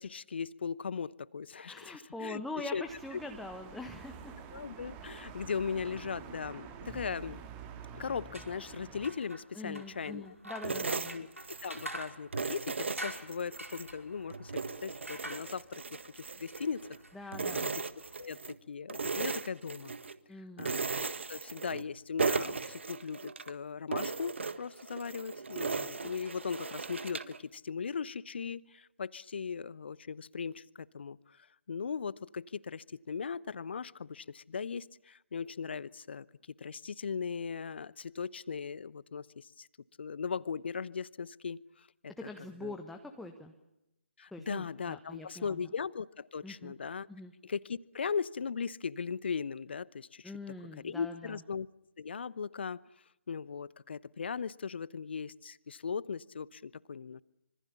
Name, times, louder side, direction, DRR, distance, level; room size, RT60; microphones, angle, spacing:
voice 1, 0.0-2.4 2.7-2.8 4.5-7.4 7.9-10.4 10.9-11.3 11.6-14.5 14.8-16.9 17.5-17.8 18.2-20.0 20.6-30.6 30.9-39.7 40.0-41.9 42.2-42.3 42.6-42.8 44.2-47.1 47.4-50.3 50.8-51.7 52.0-52.8 53.3-57.2, left 6 dB, 50° left, 21 dB, 0.9 m, -38 dB
voice 2, 1.7-4.3 9.5-11.2 17.1-17.7 20.3-20.8 42.2-43.5 44.3-45.6 46.4-46.7 47.1-47.3 50.2-51.4, left 2 dB, ahead, 4 dB, 1.4 m, -44 dB
sound 1, 2.8-9.1, right 7 dB, 20° right, 2.4 m, -48 dB
sound 2, 8.2-18.2, right 1 dB, 90° right, 5.3 m, -48 dB
sound 3, 10.6-11.9 12.3-13.9 14.3-17.0 17.3-18.6 18.9-20.2 20.6-21.9 22.2-23.5 23.9-27.4, right 4 dB, 60° right, 1.5 m, -37 dB
26.0 x 25.0 x 7.1 m, 0.88 s
figure-of-eight pair, 145°, 7 cm